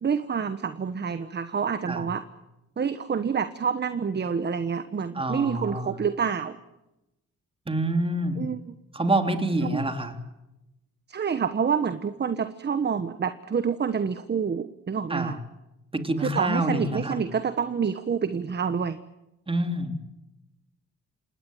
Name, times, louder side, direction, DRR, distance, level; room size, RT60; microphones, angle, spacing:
voice 1, 0.0-2.2 2.8-6.6 8.4-8.7 9.6-9.8 11.1-15.4 16.2-19.0, right 6 dB, 35° right, 11 dB, 1.2 m, -27 dB
voice 2, 5.2-5.9 7.7-8.4 8.9-10.2 15.1-15.3 15.9-17.2 19.5-19.9, right 1 dB, 20° right, 6 dB, 3.5 m, -27 dB
27.0 x 19.5 x 9.4 m, 0.94 s
cardioid pair, 90°, 30 cm